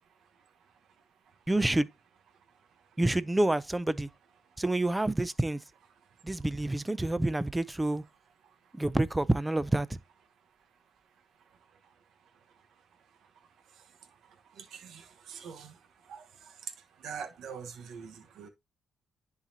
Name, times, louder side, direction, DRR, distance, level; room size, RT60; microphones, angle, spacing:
voice 1, 1.5-1.9 3.0-4.1 4.6-5.6 6.2-8.0 8.8-10.0, right 1 dB, 10° right, 0.5 m, -28 dB
voice 2, 14.6-15.7 16.1-16.2 17.0-18.5, right 6 dB, 75° right, 1.3 m, -43 dB
10.5 x 4.1 x 2.8 m
cardioid pair, 90°, 0 cm